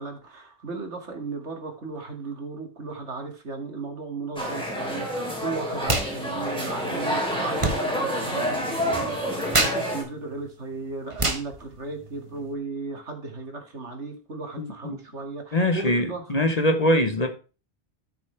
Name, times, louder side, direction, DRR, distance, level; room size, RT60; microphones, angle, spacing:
voice 1, 0.0-16.5, right 3 dB, 85° right, 2.4 m, -36 dB
sound 1, 4.4-10.0, equal, 5° left, 3.7 m, -28 dB
sound 2, 5.8-6.1 6.4-12.5, right 2 dB, 30° right, 1.4 m, -30 dB
voice 2, 14.6-15.0 15.5-17.3, left 1 dB, 35° left, 1.1 m, -23 dB
13.5 x 6.7 x 3.3 m
omnidirectional pair, 1.2 m